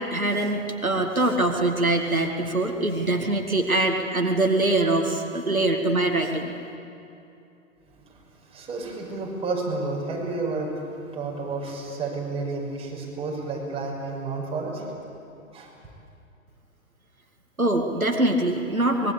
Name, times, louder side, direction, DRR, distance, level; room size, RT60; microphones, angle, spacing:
voice 1, 0.0-6.5 17.6-19.1, right 2 dB, 85° right, 3 dB, 2.4 m, -23 dB
voice 2, 8.5-14.9 15.5-15.7, right 3 dB, 15° right, -3 dB, 6.0 m, -31 dB
24.5 x 22.0 x 8.6 m, 2.6 s
figure-of-eight pair, 115°, 41 cm